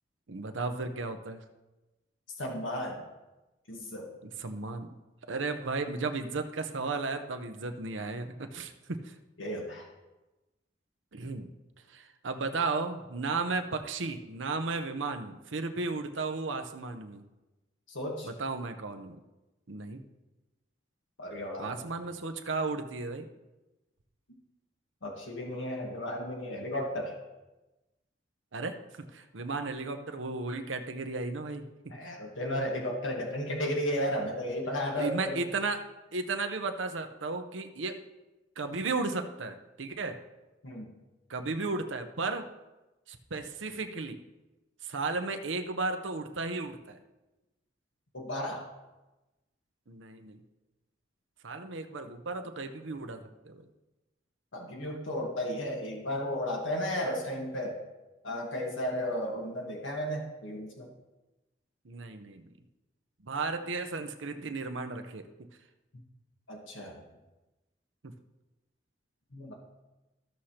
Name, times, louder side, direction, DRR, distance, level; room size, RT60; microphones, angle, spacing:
voice 1, 0.3-1.4 4.2-4.9 5.3-8.7 9.0-9.1 11.1-11.5 11.9-17.2 18.2-19.2 19.7-20.0 21.6-23.3 28.5-31.6 35.0-38.0 38.6-40.2 41.3-42.5 43.1-44.2 44.8-47.0 49.9-50.4 51.4-53.7 61.8-62.4 63.2-65.3 68.0-68.1, right 3 dB, 85° right, 7 dB, 0.8 m, -34 dB
voice 2, 2.4-3.0 3.7-4.1 9.4-9.9 17.9-18.3 21.2-21.8 25.0-27.1 31.9-35.4 40.6-40.9 48.1-48.6 54.5-57.8 58.2-60.9 66.5-67.0 69.3-69.5, equal, 90° left, -1 dB, 1.5 m, -34 dB
14.5 x 6.4 x 2.9 m, 1.1 s
head